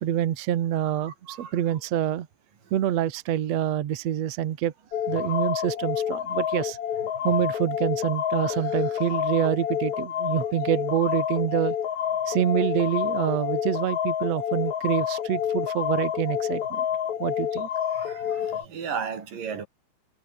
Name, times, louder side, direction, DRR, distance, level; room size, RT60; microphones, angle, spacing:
voice 1, 0.0-2.3 2.7-4.7 5.1-6.8 7.2-11.7 12.3-16.8 17.2-17.7, right 11 dB, 75° right, 1.5 m, -26 dB
voice 2, 1.0-1.5 17.9-19.7, right 6 dB, 50° right, 5.2 m, -35 dB
sound 1, 4.9-18.6, left 9 dB, 50° left, 2.6 m, -28 dB
omnidirectional pair, 5.2 m